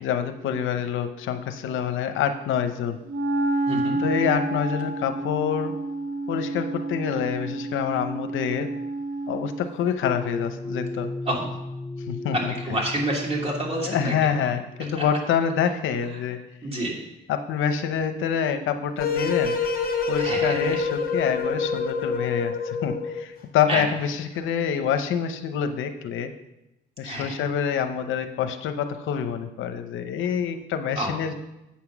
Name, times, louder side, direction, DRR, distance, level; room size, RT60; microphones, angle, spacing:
voice 1, 0.0-3.0 4.0-5.7 6.3-8.7 9.3-11.1 12.1-12.5 13.8-16.4 17.3-19.6 20.1-26.3 27.0-31.3, left 8 dB, 80° left, 8 dB, 0.8 m, -26 dB
Wind instrument woodwind instrument, 3.1-9.7, right 2 dB, 85° right, 1.0 m, -29 dB
voice 2, 3.7-4.0 11.3-11.5 12.3-14.3 16.6-17.0 20.2-20.8 23.7-23.8 27.0-27.4 31.0-31.1, right 1 dB, 30° right, -2 dB, 2.9 m, -28 dB
sound 1, 10.0-15.2, left 2 dB, 15° left, 0.4 m, -35 dB
sound 2, 19.0-23.3, left 4 dB, 50° left, 1.8 m, -26 dB
8.4 x 5.8 x 6.0 m, 0.91 s
cardioid pair, 90°, 20 cm